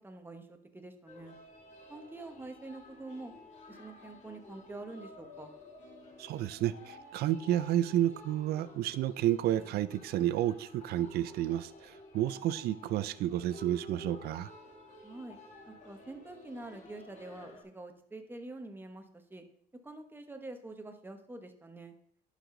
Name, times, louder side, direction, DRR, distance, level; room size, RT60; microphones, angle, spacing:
voice 1, 0.0-1.4 1.9-3.3 3.7-5.5 15.0-15.4 15.7-19.0 19.3-19.4 19.8-22.0, right 2 dB, 10° right, 6 dB, 1.1 m, -46 dB
sound 1, 1.1-17.6, left 2 dB, 45° left, 2.2 m, -52 dB
voice 2, 6.2-14.5, right 12 dB, 70° right, 14 dB, 0.5 m, -31 dB
11.0 x 5.0 x 3.8 m, 0.64 s
cardioid pair, 110°, 17 cm